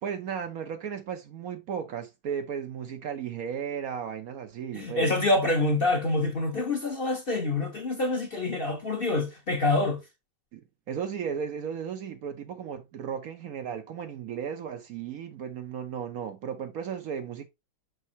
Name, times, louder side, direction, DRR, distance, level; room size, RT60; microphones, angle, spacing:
voice 1, 0.0-5.1 10.5-10.6 10.9-17.5, right 7 dB, 65° right, 1.0 m, -35 dB
voice 2, 4.7-10.0, left 2 dB, 40° left, 1.0 m, -26 dB
6.4 x 5.4 x 2.7 m
omnidirectional pair, 1.8 m